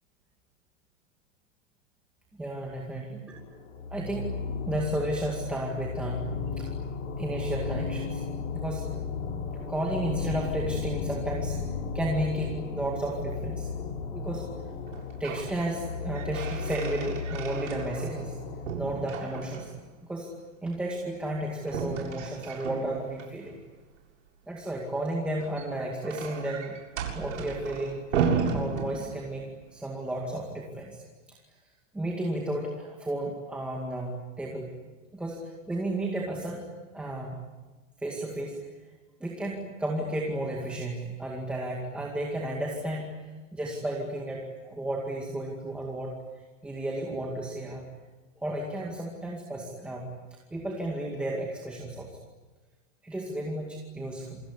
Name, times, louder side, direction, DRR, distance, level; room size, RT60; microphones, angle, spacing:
voice 1, 2.4-3.0 3.9-4.3 4.7-6.2 6.6-6.7 7.2-8.2 8.5-8.9 9.5-11.6 11.9-13.7 14.1-14.4 15.2-18.4 18.8-19.7 20.0-20.3 20.6-23.6 24.5-26.7 27.1-31.0 31.3-31.4 31.9-34.7 35.1-36.6 36.9-37.4 38.0-38.7 39.2-46.1 46.6-47.8 48.4-50.0 50.5-52.1 53.0-54.4, right 1 dB, 5° right, -2 dB, 2.2 m, -33 dB
sound 1, 3.3-18.7, left 5 dB, 55° left, 7.7 m, -34 dB
sound 2, 14.9-15.5 15.9-18.3 18.6-19.9 21.6-23.3 25.3-29.5, right 6 dB, 80° right, 7.2 m, -34 dB
27.5 x 21.5 x 9.8 m, 1.3 s
supercardioid pair, 175°, 38 cm